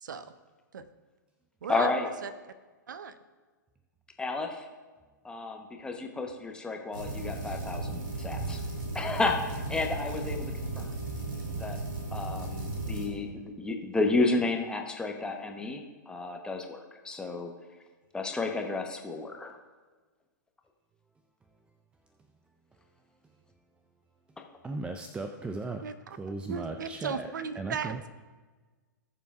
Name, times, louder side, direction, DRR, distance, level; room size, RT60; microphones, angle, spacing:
voice 1, 0.0-0.3 0.7-0.9 1.6-2.3 2.9-3.2 25.8-28.1, right 6 dB, 70° right, 12 dB, 0.6 m, -37 dB
voice 2, 1.7-2.1 4.2-4.7 5.2-8.6 8.9-10.9 11.5-11.8 12.1-17.5 18.1-19.6, left 3 dB, 10° left, 3 dB, 1.0 m, -32 dB
sound 1, 6.9-13.1, right 2 dB, 90° right, 2.6 m, -35 dB
voice 3, 24.6-25.8 26.2-28.1, right 3 dB, 10° right, 6 dB, 0.4 m, -37 dB
18.5 x 6.9 x 2.4 m, 1.4 s
figure-of-eight pair, 110°, 11 cm